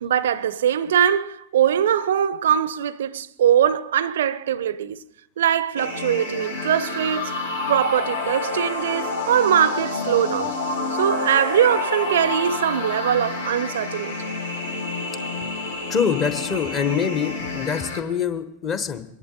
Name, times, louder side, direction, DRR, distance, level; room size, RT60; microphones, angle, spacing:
voice 1, 0.0-5.0 5.4-10.6 11.0-14.1, right 9 dB, 60° right, 0.4 m, -21 dB
sound 1, 5.8-18.0, left 3 dB, 75° left, 2.0 m, -29 dB
voice 2, 15.9-19.0, left 7 dB, 30° left, 1.0 m, -24 dB
23.5 x 11.0 x 3.9 m
figure-of-eight pair, 90°, 0 cm